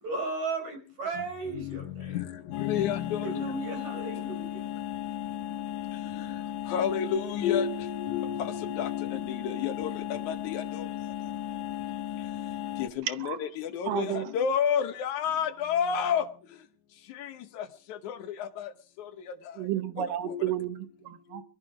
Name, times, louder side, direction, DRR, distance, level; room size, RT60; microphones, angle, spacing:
voice 1, 0.0-2.2 3.2-4.6, right 3 dB, 55° right, 5.9 m, -35 dB
voice 2, 1.5-3.5 6.2-6.3 6.7-10.9 12.8-16.2 17.2-18.7 19.0-19.1 20.0-20.5, left 8 dB, 70° left, 2.2 m, -31 dB
sound 1, 2.5-12.9, left 11 dB, 85° left, 2.7 m, -36 dB
voice 3, 13.9-14.2 19.6-21.4, right 12 dB, 85° right, 2.7 m, -32 dB
22.5 x 13.0 x 4.8 m
omnidirectional pair, 3.8 m